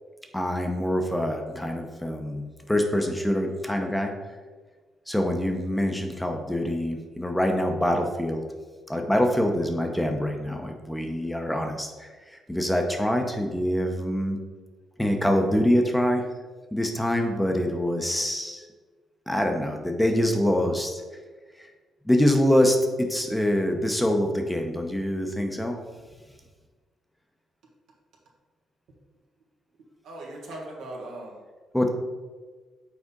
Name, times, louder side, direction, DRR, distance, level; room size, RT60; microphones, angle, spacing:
voice 1, 0.3-4.1 5.1-8.4 8.9-14.4 15.0-16.2 16.7-18.7 19.3-21.0 21.6-21.7 22.0-25.8 31.7-31.9, equal, 5° left, 4 dB, 0.7 m, -25 dB
voice 2, 30.0-31.4, right 1 dB, 80° right, -2 dB, 1.5 m, -39 dB
6.3 x 4.2 x 3.7 m, 1.4 s
cardioid pair, 90°, 0 cm